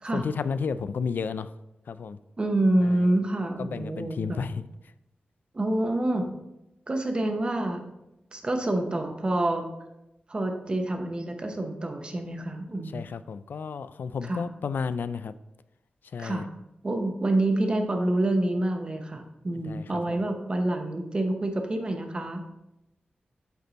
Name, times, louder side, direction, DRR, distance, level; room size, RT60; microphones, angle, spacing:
voice 1, 0.1-1.5 1.9-2.2 2.9-3.0 3.6-4.6 12.9-15.3 16.1-16.4 19.7-20.2, left 5 dB, 75° left, 0.3 m, -32 dB
voice 2, 2.4-4.4 5.5-6.3 6.9-7.9 8.3-9.7 10.3-13.1 14.2-14.4 16.2-16.4 16.8-22.4, right 1 dB, 30° right, 0.9 m, -27 dB
8.1 x 4.4 x 4.0 m
wide cardioid pair, 140°, 3 cm